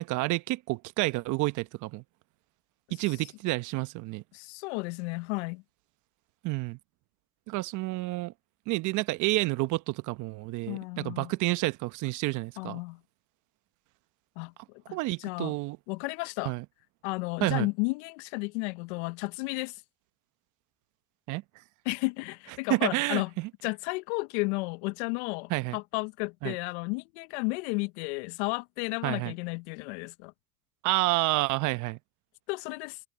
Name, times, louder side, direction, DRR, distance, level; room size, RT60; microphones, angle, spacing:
voice 1, 0.0-2.0 2.9-4.2 6.4-6.8 7.5-8.3 8.7-12.8 14.9-15.8 16.4-16.6 17.4-17.7 21.3-21.4 22.7-23.5 25.5-25.8 26.4-26.6 29.0-29.3 30.8-32.0, right 21 dB, 55° right, 1.1 m, -29 dB
voice 2, 4.3-5.6 10.7-11.3 12.6-13.0 14.4-15.5 15.9-16.5 17.0-19.8 21.8-23.3 23.6-30.3 32.5-33.0, left 28 dB, 70° left, 0.9 m, -33 dB
hypercardioid pair, 85°, 35 cm